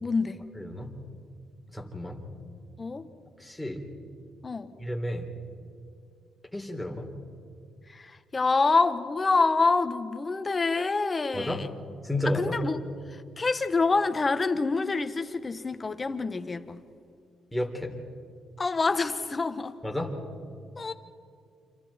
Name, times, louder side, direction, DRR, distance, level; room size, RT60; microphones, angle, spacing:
voice 1, 0.0-0.4 2.8-3.1 4.4-4.7 7.9-11.7 12.3-12.8 13.1-16.8 18.6-19.7 20.8-20.9, left 4 dB, 30° left, 10 dB, 1.5 m, -26 dB
voice 2, 0.6-0.9 1.7-2.2 3.4-3.8 4.8-5.3 6.5-7.1 11.3-11.6 12.0-12.6 17.5-18.0 19.8-20.1, left 1 dB, 5° left, 1 dB, 3.8 m, -32 dB
29.5 x 27.0 x 4.5 m, 2.3 s
cardioid pair, 90°, 0 cm